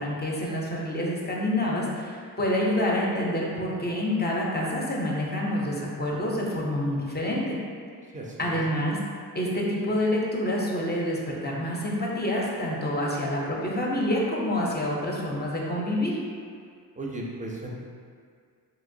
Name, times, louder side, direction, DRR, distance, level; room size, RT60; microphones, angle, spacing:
voice 1, 0.0-7.6 8.4-9.0 9.3-16.2, left 1 dB, 25° left, -3 dB, 0.6 m, -27 dB
voice 2, 8.1-8.6 17.0-17.7, right 1 dB, 20° right, -2 dB, 0.5 m, -35 dB
2.9 x 2.9 x 2.6 m, 2.1 s
cardioid pair, 70°, 40 cm